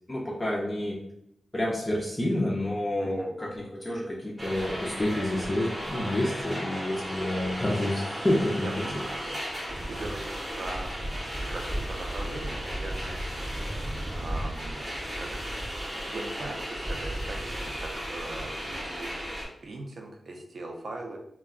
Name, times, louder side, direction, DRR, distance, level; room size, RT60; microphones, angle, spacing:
voice 1, 0.1-1.0 1.5-8.7, left 1 dB, 20° left, -4 dB, 0.4 m, -29 dB
voice 2, 3.0-3.3 8.6-13.7 14.1-15.4 16.1-19.1 19.6-21.2, right 2 dB, 50° right, 1 dB, 0.5 m, -40 dB
sound 1, 4.4-19.4, equal, 15° right, 0.7 m, -34 dB
2.3 x 2.1 x 3.6 m, 0.77 s
wide cardioid pair, 160°, 0 cm